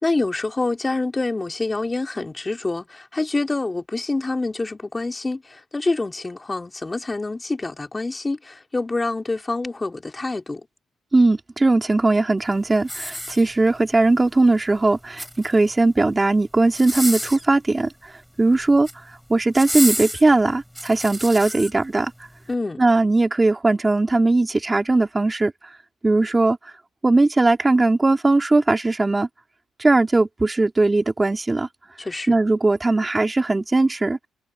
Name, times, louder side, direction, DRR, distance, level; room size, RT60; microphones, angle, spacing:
voice 1, 0.0-10.6 22.5-22.8 32.0-32.4, left 2 dB, 20° left, 2.8 m, -26 dB
voice 2, 11.1-18.1 18.4-18.9 19.3-22.1 22.8-25.5 26.0-26.6 27.0-29.3 29.8-31.7 32.3-34.2, right 2 dB, 20° right, 3.3 m, -19 dB
sound 1, 12.8-13.8 14.9-15.7 16.7-17.5 18.6-19.0 19.5-21.7 22.3-22.4, equal, ahead, 5.7 m, -30 dB
cardioid pair, 90°, 0 cm